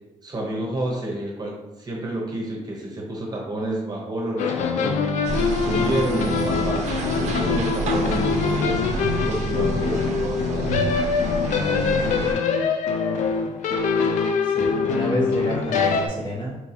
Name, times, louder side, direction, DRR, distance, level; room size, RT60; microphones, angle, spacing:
voice 1, 0.2-5.0 5.6-8.8 9.2-10.7 11.5-12.4, right 1 dB, 30° right, -2 dB, 0.8 m, -29 dB
sound 1, 4.4-16.1, left 5 dB, 75° left, 0.4 m, -24 dB
sound 2, 5.2-12.3, right 3 dB, 65° right, 0.5 m, -29 dB
voice 2, 14.4-16.6, equal, 40° left, -4 dB, 1.0 m, -29 dB
4.4 x 2.3 x 2.7 m, 1.1 s
cardioid pair, 120°, 13 cm